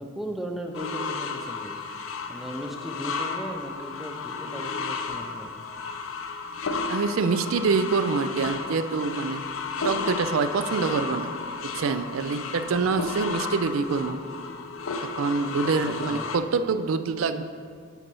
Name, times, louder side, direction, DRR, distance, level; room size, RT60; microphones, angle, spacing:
voice 1, 0.0-1.8 2.3-5.5 15.4-16.3, equal, ahead, 2 dB, 0.4 m, -37 dB
sound 1, 0.7-16.4, left 4 dB, 75° left, 0.5 m, -33 dB
voice 2, 6.9-9.4 9.8-11.3 11.8-14.2 15.0-17.4, right 4 dB, 80° right, 10 dB, 0.4 m, -26 dB
8.2 x 4.2 x 5.4 m, 2.1 s
head